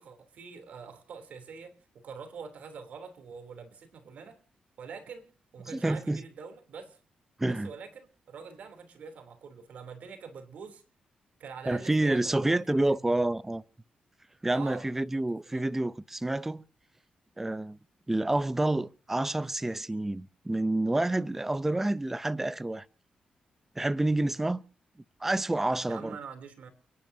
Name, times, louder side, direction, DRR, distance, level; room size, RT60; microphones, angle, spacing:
voice 1, 0.0-4.4 4.8-7.0 7.4-10.8 11.4-13.0 14.4-14.9 15.1-15.2 15.5-15.7 25.9-26.7, right 5 dB, 75° right, 3.1 m, -45 dB
voice 2, 5.7-6.2 7.4-7.7 11.7-13.6 14.4-16.6 17.4-17.8 18.1-22.8 23.8-24.6 25.2-26.2, right 2 dB, 10° right, 0.5 m, -28 dB
29.5 x 10.5 x 2.7 m
cardioid pair, 110°, 3 cm